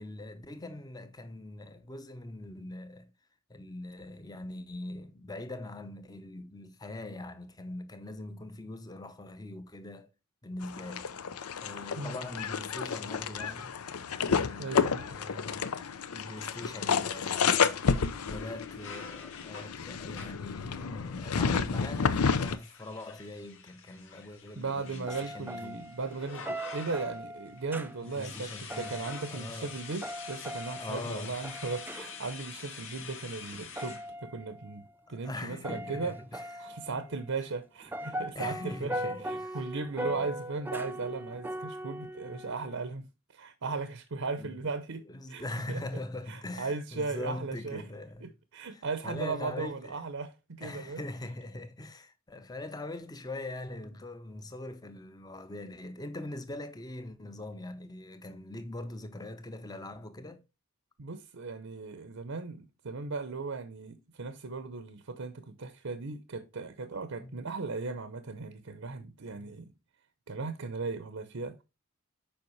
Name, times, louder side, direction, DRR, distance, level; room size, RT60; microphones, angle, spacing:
voice 1, 0.0-3.1 3.5-10.1 10.4-11.0 11.6-13.8 14.3-15.7 16.1-17.7 18.2-25.8 28.0-29.8 30.8-31.4 33.0-33.2 35.1-37.2 38.0-39.6 40.0-40.3 42.3-42.5 44.4-44.7 45.1-48.3 48.7-50.0 50.6-60.4 67.2-67.4 69.3-69.5, left 2 dB, 20° left, 0.7 m, -42 dB
sound 1, 10.6-22.6, left 5 dB, 90° left, 0.6 m, -31 dB
voice 2, 14.6-15.0 17.2-17.3 24.6-36.1 36.6-38.9 39.2-43.1 43.3-45.4 45.7-45.8 46.3-47.8 48.2-51.0 61.0-69.7 70.3-71.6, right 4 dB, 65° right, 0.7 m, -37 dB
sound 2, 16.4-20.5 21.4-27.2 27.6-34.1, left 5 dB, 60° left, 1.7 m, -47 dB
sound 3, 25.1-32.4 33.7-34.9 35.5-37.3 37.8-42.9, right 1 dB, 10° right, 0.4 m, -40 dB
7.2 x 5.1 x 3.1 m
head